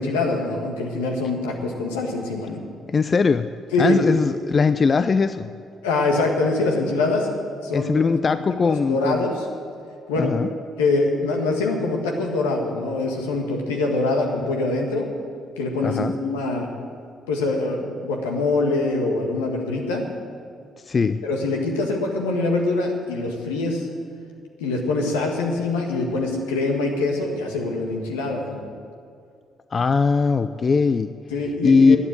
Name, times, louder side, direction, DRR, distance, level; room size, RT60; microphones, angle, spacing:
voice 1, 0.0-2.6 3.7-4.0 5.8-7.4 7.6-7.9 8.6-9.4 10.1-10.3 10.8-15.1 15.6-16.7 17.3-20.1 21.2-23.9 24.6-28.7 31.3-32.0, left 2 dB, 85° left, 1 dB, 1.6 m, -24 dB
voice 2, 2.9-3.5 3.8-5.5 7.7-9.3 10.2-10.5 15.8-16.1 20.8-21.2 29.7-31.1 31.6-32.0, left 5 dB, 40° left, 12 dB, 0.5 m, -20 dB
12.0 x 8.9 x 8.8 m, 2.3 s
hypercardioid pair, 50°, 0 cm